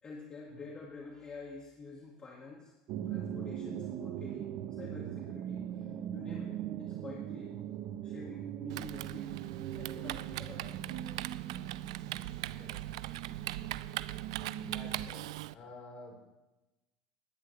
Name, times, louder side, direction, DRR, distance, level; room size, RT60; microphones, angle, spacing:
voice 1, 0.0-2.7 3.0-7.5 8.0-9.4 9.7-10.9 14.1-14.2, left 4 dB, 30° left, -2 dB, 2.2 m, -49 dB
sound 1, 2.9-15.1, right 10 dB, 55° right, 0.9 m, -40 dB
Typing, 8.7-15.5, right 16 dB, 80° right, 0.4 m, -40 dB
voice 2, 12.6-13.1 14.6-15.2 15.5-16.2, left 2 dB, 45° left, 1 dB, 4.5 m, -51 dB
20.0 x 9.8 x 3.4 m, 0.99 s
supercardioid pair, 95°, 3 cm